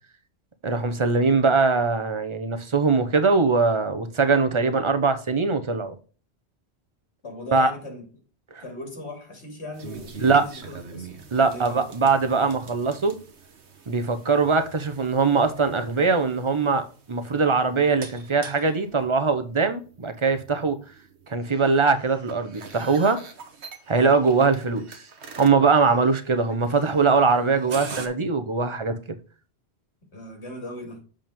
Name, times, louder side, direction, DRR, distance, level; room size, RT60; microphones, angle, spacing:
voice 1, 0.6-6.0 7.5-7.7 8.5-8.6 10.2-10.5 11.3-13.2 13.9-20.8 21.3-23.2 23.9-25.0 25.4-29.0, right 4 dB, 30° right, 0.8 m, -21 dB
voice 2, 7.2-8.0 8.6-11.8 30.1-31.0, left 1 dB, 90° left, 2.7 m, -38 dB
sound 1, 9.7-28.1, right 5 dB, 85° right, 1.5 m, -44 dB
7.2 x 5.4 x 3.5 m
omnidirectional pair, 1.1 m